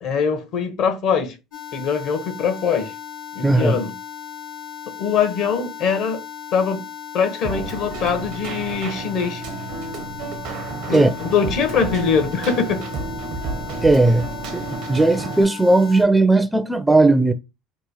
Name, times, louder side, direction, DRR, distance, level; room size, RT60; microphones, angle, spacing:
voice 1, 0.0-1.4 1.7-2.9 3.3-3.9 5.0-6.2 6.5-6.8 7.1-9.4 10.9-12.8, left 6 dB, 60° left, 0.9 m, -22 dB
sound 1, 1.5-16.0, left 7 dB, 80° left, 1.2 m, -36 dB
voice 2, 3.4-3.8 10.9-11.1 13.8-14.2 14.5-17.3, right 2 dB, 5° right, 0.4 m, -16 dB
Keyboard (musical), 7.4-15.4, right 4 dB, 70° right, 0.7 m, -31 dB
3.0 x 2.2 x 4.0 m
supercardioid pair, 80°, 0 cm